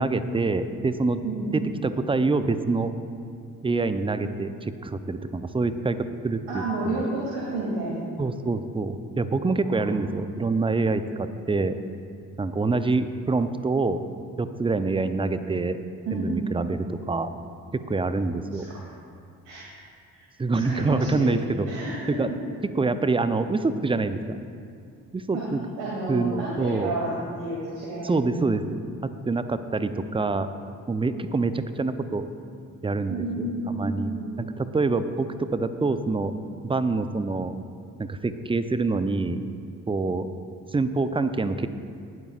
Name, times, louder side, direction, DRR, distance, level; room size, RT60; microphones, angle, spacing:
voice 1, 0.0-1.2 2.0-2.9 3.6-7.0 8.2-11.8 12.4-14.0 14.4-15.8 16.1-17.3 17.7-18.7 20.4-21.7 22.2-22.3 22.7-24.4 25.1-25.6 26.1-26.9 28.0-30.5 30.9-32.2 32.8-36.3 36.6-37.5 38.0-39.4 39.9-40.3 40.7-41.7, right 3 dB, 10° right, 11 dB, 0.6 m, -26 dB
voice 2, 1.2-1.5 6.5-8.1 9.6-10.2 16.1-16.6 18.5-18.8 19.4-19.7 20.6-21.3 21.7-22.4 25.3-25.4 25.8-28.4 33.1-34.4, right 2 dB, 65° right, -6 dB, 2.8 m, -31 dB
19.0 x 12.0 x 2.5 m, 2.4 s
figure-of-eight pair, 45°, 43 cm